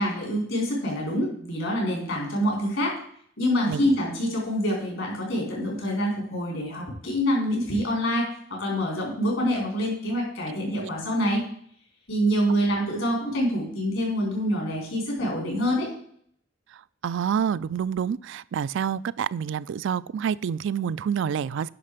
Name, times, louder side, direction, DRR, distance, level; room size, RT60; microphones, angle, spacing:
voice 1, 0.0-3.0 3.4-8.2 8.6-11.4 12.1-15.9, equal, 75° left, -1 dB, 4.7 m, -26 dB
voice 2, 17.0-21.7, right 7 dB, 65° right, 18 dB, 0.3 m, -27 dB
9.8 x 6.0 x 5.0 m, 0.63 s
head